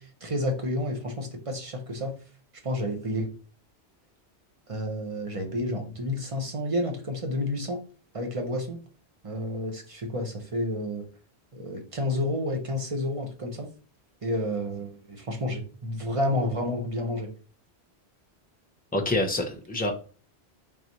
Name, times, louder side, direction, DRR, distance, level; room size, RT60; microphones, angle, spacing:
voice 1, 0.0-2.1 2.6-3.3 4.7-7.8 8.1-8.8 9.2-11.1 11.5-13.7 14.2-17.3, left 1 dB, 35° right, 3 dB, 0.9 m, -30 dB
voice 2, 18.9-19.9, left 1 dB, 10° left, 2 dB, 0.6 m, -26 dB
3.9 x 3.5 x 3.0 m, 0.38 s
omnidirectional pair, 1.1 m